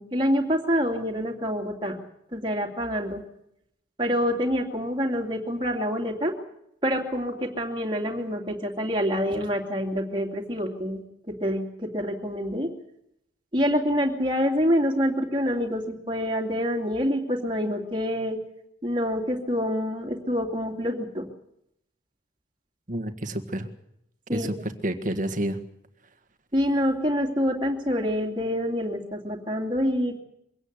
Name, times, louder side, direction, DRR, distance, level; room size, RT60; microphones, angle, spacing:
voice 1, 0.0-2.0 2.3-3.2 4.0-6.3 6.8-11.0 11.4-12.7 13.5-18.4 18.8-21.3 24.3-24.5 26.5-30.2, equal, 25° right, 0 dB, 2.6 m, -26 dB
voice 2, 22.9-23.7 24.3-25.6, right 1 dB, 40° right, 9 dB, 1.6 m, -29 dB
23.5 x 17.5 x 8.1 m, 0.78 s
head